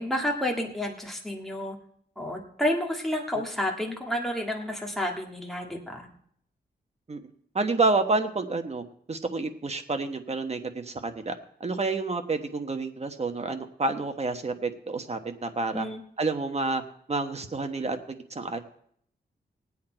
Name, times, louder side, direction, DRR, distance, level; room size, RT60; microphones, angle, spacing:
voice 1, 0.0-1.8 2.2-6.1 15.7-16.0, left 1 dB, ahead, 0 dB, 1.7 m, -30 dB
voice 2, 7.5-15.9 16.2-16.8 17.1-18.6, right 3 dB, 35° right, 6 dB, 1.2 m, -29 dB
19.0 x 8.6 x 4.4 m, 0.65 s
wide cardioid pair, 110°, 18 cm